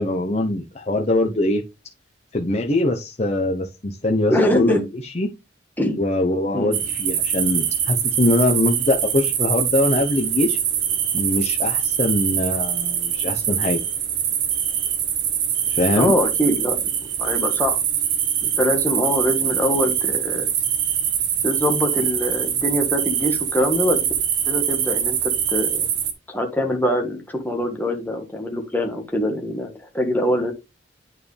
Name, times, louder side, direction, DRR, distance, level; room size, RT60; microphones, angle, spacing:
voice 1, 0.0-1.6 2.3-5.3 6.0-10.6 11.1-13.8 15.7-16.1, left 2 dB, 35° left, 1 dB, 0.8 m, -22 dB
voice 2, 4.3-4.8 5.8-6.0 6.5-6.7 15.9-16.9 17.2-17.8 18.4-20.5 21.4-24.0 24.5-25.9 26.3-30.5, left 1 dB, 10° left, 2 dB, 1.5 m, -23 dB
sound 1, 6.7-26.1, right 9 dB, 80° right, 1.3 m, -23 dB
9.0 x 4.6 x 3.3 m, 0.25 s
head